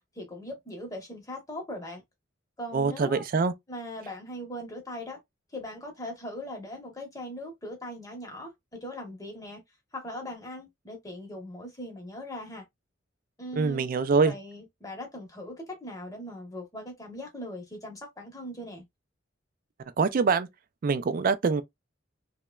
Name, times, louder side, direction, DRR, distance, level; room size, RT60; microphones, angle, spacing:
voice 1, 0.1-2.0 2.6-3.2 3.7-5.2 5.5-9.6 9.9-12.6 13.4-13.9 14.2-18.8, left 1 dB, 20° left, 0.9 m, -40 dB
voice 2, 2.7-3.5 13.6-14.3 20.0-20.5 20.8-21.6, right 4 dB, 45° right, 0.3 m, -24 dB
2.9 x 2.1 x 2.2 m
head